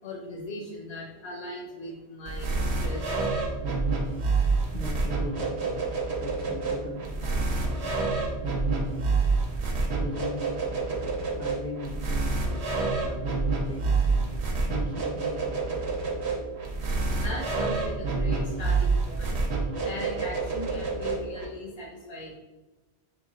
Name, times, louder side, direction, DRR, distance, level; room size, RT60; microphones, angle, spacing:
voice 1, 0.0-3.3 9.5-10.0 17.1-22.4, left 1 dB, 80° left, -2 dB, 1.0 m, -39 dB
sound 1, 2.3-21.5, right 3 dB, 85° right, 1.0 m, -28 dB
voice 2, 4.7-9.7 10.0-16.1, left 3 dB, 55° left, 0 dB, 0.6 m, -40 dB
3.3 x 3.0 x 3.8 m, 1.1 s
omnidirectional pair, 1.1 m